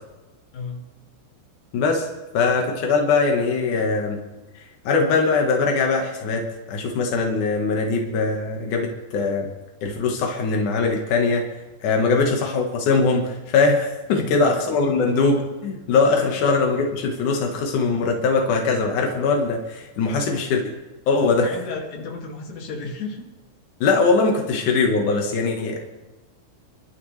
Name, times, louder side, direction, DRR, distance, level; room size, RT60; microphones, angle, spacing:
voice 1, 1.7-2.1 2.3-4.2 4.8-9.5 9.8-11.4 11.8-20.7 21.1-21.5 23.8-25.8, left 4 dB, 80° left, 1 dB, 1.8 m, -21 dB
voice 2, 12.0-12.3 14.2-14.5 14.8-15.1 16.1-16.4 20.0-20.5 21.3-23.3, left 4 dB, 45° left, 0 dB, 2.6 m, -33 dB
28.0 x 12.0 x 3.3 m, 1.1 s
omnidirectional pair, 5.9 m